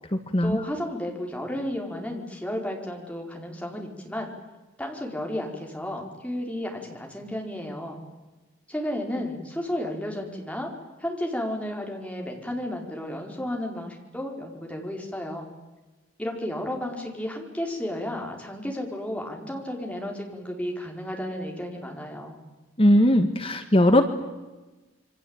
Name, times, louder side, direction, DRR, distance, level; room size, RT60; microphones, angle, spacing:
voice 1, 0.4-4.3 4.8-8.0 8.7-10.7 11.0-15.5 16.2-22.4, left 1 dB, 5° left, 1 dB, 4.7 m, -33 dB
voice 2, 22.8-24.0, left 1 dB, 25° left, 8 dB, 1.5 m, -19 dB
27.5 x 24.0 x 9.0 m, 1.2 s
head